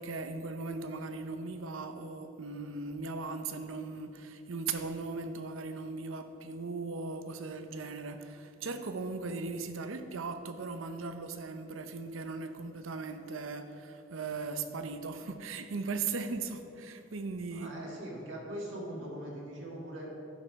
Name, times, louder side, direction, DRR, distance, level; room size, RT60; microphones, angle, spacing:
voice 1, 0.0-17.8, right 4 dB, 85° right, 8 dB, 0.6 m, -38 dB
voice 2, 17.5-20.2, right 1 dB, 70° right, -3 dB, 2.0 m, -41 dB
11.5 x 5.6 x 4.7 m, 2.8 s
head